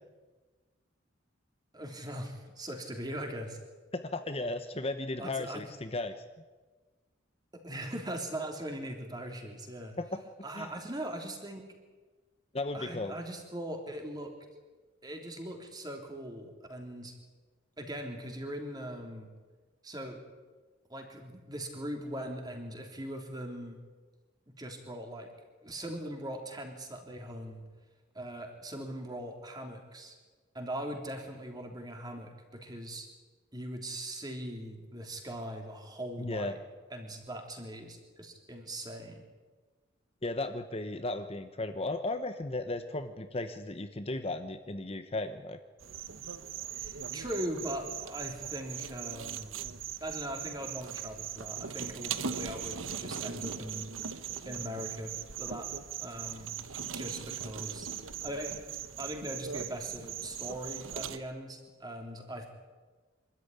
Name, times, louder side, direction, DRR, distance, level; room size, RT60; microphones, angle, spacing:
voice 1, 1.7-3.6 5.2-5.6 7.5-10.0 10.4-11.6 12.7-14.3 15.0-17.1 17.8-19.3 19.8-20.2 20.9-23.8 24.6-25.3 25.6-27.6 28.2-30.2 30.5-33.1 33.5-36.6 36.9-39.2 46.7-49.7 50.0-53.9 54.5-55.7 56.0-57.9 58.2-58.7 59.0-62.5, right 1 dB, 20° right, 3 dB, 3.4 m, -40 dB
voice 2, 3.9-6.1 10.0-10.2 10.5-10.7 12.5-13.1 36.2-36.5 40.2-45.6, left 2 dB, 30° left, 8 dB, 1.0 m, -35 dB
sound 1, 45.8-61.2, right 8 dB, 85° right, 1.1 m, -40 dB
25.0 x 13.5 x 10.0 m, 1.3 s
head